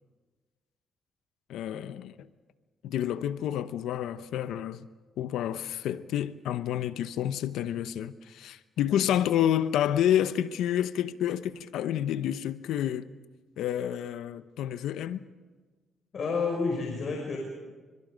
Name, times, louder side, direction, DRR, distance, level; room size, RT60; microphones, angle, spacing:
voice 1, 1.5-2.3 2.8-4.9 5.2-13.1 13.6-15.3, left 10 dB, 85° left, 0.9 m, -29 dB
voice 2, 16.1-17.4, left 4 dB, 50° left, 5.9 m, -29 dB
29.0 x 26.0 x 5.2 m
cardioid pair, 90°, 0 cm